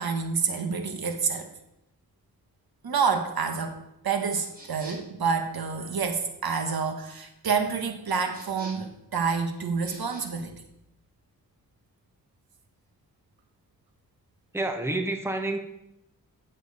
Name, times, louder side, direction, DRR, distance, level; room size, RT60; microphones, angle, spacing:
voice 1, 0.0-1.5 2.8-3.8 4.0-10.5, right 5 dB, 85° right, 5 dB, 1.5 m, -28 dB
sound 1, 4.3-5.2 8.1-9.0 9.8-10.2, right 2 dB, 25° right, 3.7 m, -47 dB
voice 2, 14.5-15.6, right 2 dB, 5° right, 5 dB, 1.1 m, -28 dB
15.0 x 7.4 x 4.2 m, 0.84 s
wide cardioid pair, 145°, 35 cm